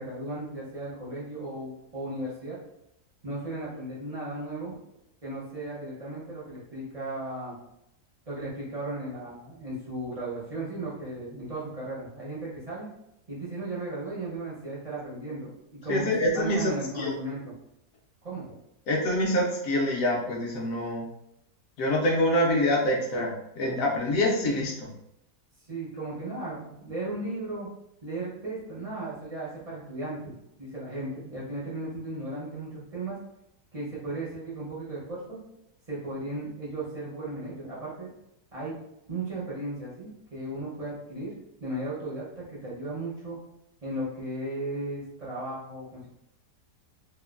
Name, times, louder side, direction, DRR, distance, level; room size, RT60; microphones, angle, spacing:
voice 1, 0.0-2.6 3.2-4.7 5.2-7.6 8.3-12.9 13.3-17.5 18.2-18.5 25.7-27.7 28.0-33.2 33.7-35.4 35.9-38.1 38.5-38.8 39.1-41.3 41.6-43.4 43.8-46.1, right 2 dB, 55° right, -7 dB, 0.4 m, -36 dB
voice 2, 15.9-17.1 18.9-21.1 21.8-24.9, left 1 dB, 70° left, -1 dB, 0.9 m, -26 dB
2.9 x 2.1 x 2.3 m, 0.81 s
omnidirectional pair, 1.7 m